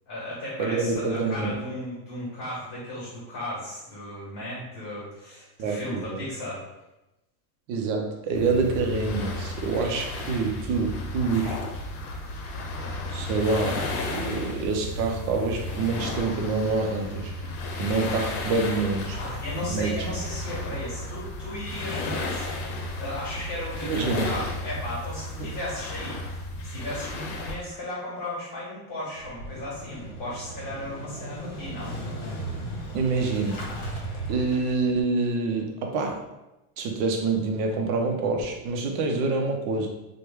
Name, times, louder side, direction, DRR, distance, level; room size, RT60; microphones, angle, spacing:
voice 1, 0.1-6.6 19.1-26.4 26.6-32.0, left 1 dB, 40° left, -7 dB, 1.5 m, -35 dB
voice 2, 0.6-1.5 5.6-6.2 7.7-11.6 13.1-17.5 17.8-19.2 19.7-19.9 23.9-24.3 25.4-25.5 32.9-33.6 34.3-36.2 36.8-39.9, right 3 dB, 40° right, 2 dB, 0.5 m, -26 dB
sound 1, 8.3-27.5, left 2 dB, 90° left, 0.8 m, -33 dB
Motorcycle / Engine starting, 29.2-35.0, right 1 dB, 65° left, 1.1 m, -36 dB
3.0 x 2.2 x 3.3 m, 0.97 s
supercardioid pair, 155°, 45 cm